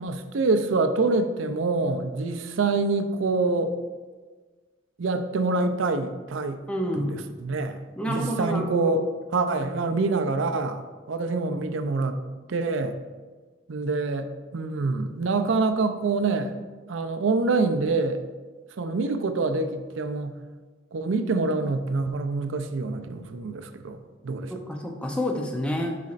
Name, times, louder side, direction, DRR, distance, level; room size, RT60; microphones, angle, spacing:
voice 1, 0.0-3.8 5.0-6.6 6.9-7.8 8.1-9.1 9.3-10.8 11.1-12.2 12.5-12.9 13.7-16.5 16.9-18.2 18.8-20.4 20.9-24.5, right 3 dB, 70° right, 8 dB, 0.5 m, -26 dB
voice 2, 6.7-7.2 8.0-8.9 24.5-26.0, equal, 5° left, 1 dB, 0.6 m, -28 dB
10.5 x 4.2 x 2.5 m, 1.4 s
head